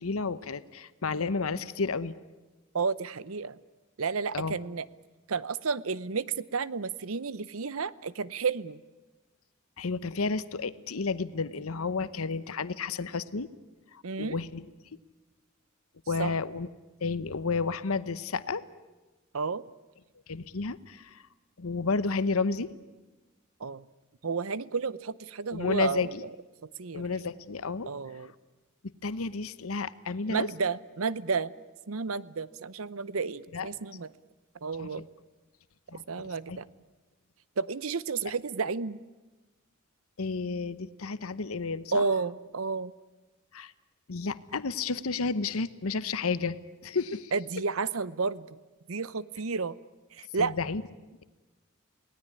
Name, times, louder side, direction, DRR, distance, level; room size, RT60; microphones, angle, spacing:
voice 1, 0.0-2.1 4.3-4.5 9.8-13.5 13.9-14.7 16.1-16.7 17.0-18.6 20.3-21.2 21.6-22.7 25.5-26.2 26.9-27.9 29.0-30.5 33.5-33.7 34.8-35.0 35.9-36.0 36.5-36.6 40.2-42.0 43.5-43.7 44.1-46.6 46.8-47.3 50.4-50.8, left 4 dB, 80° left, 14 dB, 0.9 m, -31 dB
voice 2, 2.7-3.6 4.0-4.9 5.3-8.8 14.0-14.4 16.2-16.3 19.3-19.6 23.6-23.9 24.2-26.2 26.8-27.1 27.9-28.3 30.3-31.5 31.9-34.1 34.6-35.0 36.1-36.7 37.6-39.0 41.9-42.9 47.3-48.6 48.9-49.8 50.1-50.5, right 4 dB, 75° right, 18 dB, 0.8 m, -31 dB
28.0 x 19.0 x 9.8 m, 1.2 s
head